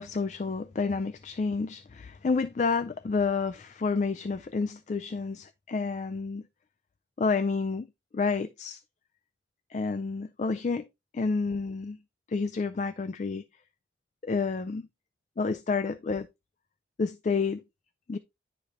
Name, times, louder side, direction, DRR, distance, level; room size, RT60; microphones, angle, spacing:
voice 1, 0.0-6.5 7.2-7.9 8.1-8.8 9.7-10.9 11.1-12.0 12.3-13.4 14.2-14.9 15.4-16.3 17.0-17.6 18.1-18.2, left 4 dB, 40° left, 0.3 m, -29 dB
10.5 x 4.9 x 2.8 m
head